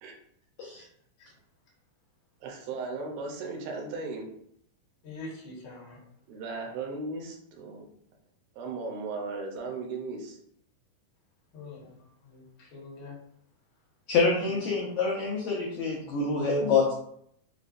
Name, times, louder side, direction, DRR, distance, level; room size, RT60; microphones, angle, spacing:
voice 1, 2.4-4.2 6.3-7.9 8.6-10.4, right 3 dB, 80° right, 1 dB, 2.6 m, -36 dB
voice 2, 5.0-6.0 11.5-13.2 14.4-14.6, left 2 dB, 50° left, -6 dB, 1.4 m, -44 dB
voice 3, 14.1-16.9, left 4 dB, 90° left, -3 dB, 1.6 m, -26 dB
6.6 x 2.3 x 2.5 m, 0.69 s
omnidirectional pair, 4.2 m